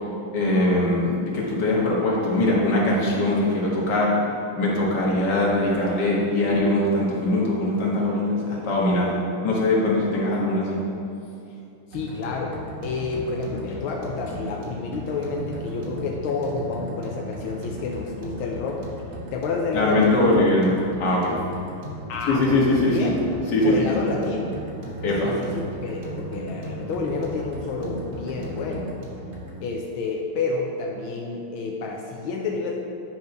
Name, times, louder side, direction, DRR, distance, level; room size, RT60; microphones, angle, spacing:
voice 1, 0.3-4.1 4.6-10.8 19.7-20.7 21.0-21.3 22.3-23.1 23.5-23.9 25.0-25.3, left 1 dB, 55° left, -4 dB, 2.1 m, -21 dB
voice 2, 11.9-18.8 19.3-20.6 22.1-23.2 23.6-24.6 25.2-28.9 29.6-32.8, left 4 dB, 85° left, -1 dB, 1.6 m, -29 dB
sound 1, 11.9-29.6, right 1 dB, 65° right, 2.0 m, -37 dB
9.3 x 4.6 x 5.3 m, 2.6 s
omnidirectional pair, 2.2 m